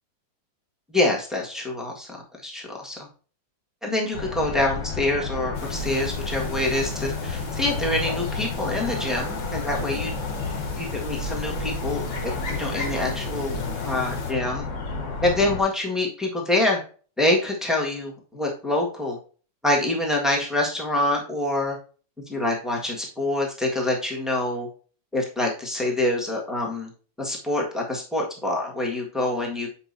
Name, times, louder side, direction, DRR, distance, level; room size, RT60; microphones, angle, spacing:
voice 1, 0.9-3.1 3.8-10.1 10.8-14.7 15.2-16.8 17.2-19.2 19.6-21.8 22.3-24.7 25.1-26.9 27.2-29.7, left 1 dB, ahead, -2 dB, 1.3 m, -26 dB
sound 1, 4.1-15.6, left 4 dB, 70° left, 2.1 m, -31 dB
sound 2, 5.5-14.3, left 1 dB, 40° left, 1.0 m, -36 dB
7.5 x 5.2 x 2.6 m, 0.39 s
omnidirectional pair, 2.0 m